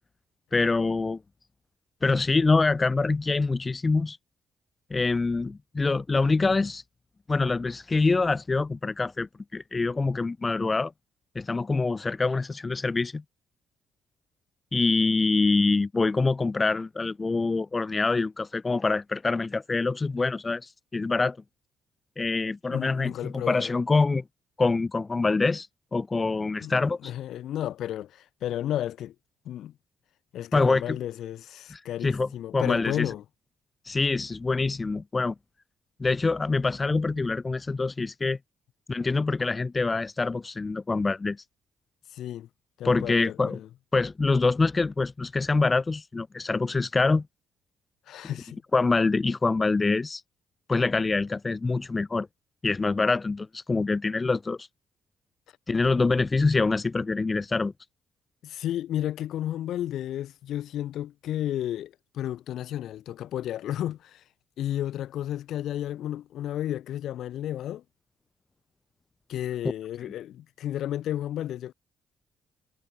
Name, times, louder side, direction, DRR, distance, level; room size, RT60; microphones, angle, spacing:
voice 1, 0.5-1.2 2.0-4.2 4.9-6.8 7.3-10.9 11.3-13.2 14.7-21.4 22.2-24.2 24.6-27.0 30.5-31.0 31.7-33.1 33.9-35.3 36.0-38.4 38.9-41.4 42.8-43.6 43.9-47.3 48.7-50.2 50.7-52.3 52.6-54.7 55.7-57.7, left 3 dB, 25° left, 1.2 m, -25 dB
voice 2, 22.7-23.7 26.6-26.7 27.0-29.1 29.4-29.7 30.3-33.2 42.1-42.5 42.8-43.7 48.1-48.6 58.4-64.2 64.6-67.8 69.3-71.7, left 12 dB, 75° left, 2.7 m, -32 dB
cardioid pair, 105°, 0 cm